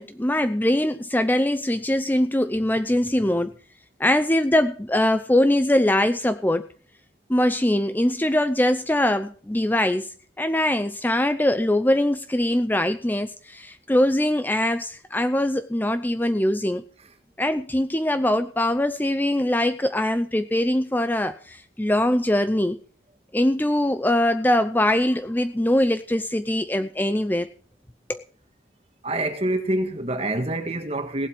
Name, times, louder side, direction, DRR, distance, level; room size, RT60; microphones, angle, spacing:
voice 1, 0.0-3.5 4.0-6.6 7.3-10.1 10.4-16.8 17.4-22.8 23.3-27.5 28.1-28.2, left 1 dB, 10° left, 0.6 m, -22 dB
voice 2, 29.0-31.3, right 1 dB, 35° right, 1.7 m, -26 dB
18.0 x 8.0 x 6.0 m
head